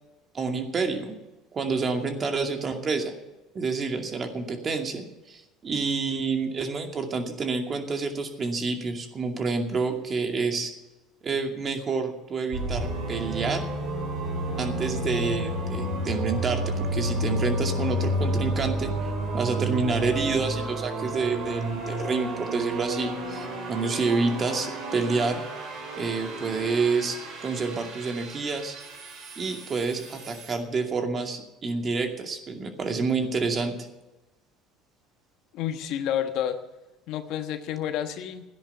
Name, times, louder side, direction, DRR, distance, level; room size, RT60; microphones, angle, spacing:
voice 1, 0.3-1.2 1.5-3.1 3.5-10.7 11.2-13.7 14.6-25.4 26.0-28.8 29.4-33.7, right 4 dB, 35° right, 4 dB, 2.4 m, -28 dB
sound 1, 12.5-30.6, right 1 dB, 65° right, 4.3 m, -31 dB
voice 2, 35.5-36.6 37.1-38.4, left 10 dB, 65° left, 8 dB, 1.2 m, -29 dB
13.0 x 10.5 x 7.1 m, 1.0 s
supercardioid pair, 85°, 0 cm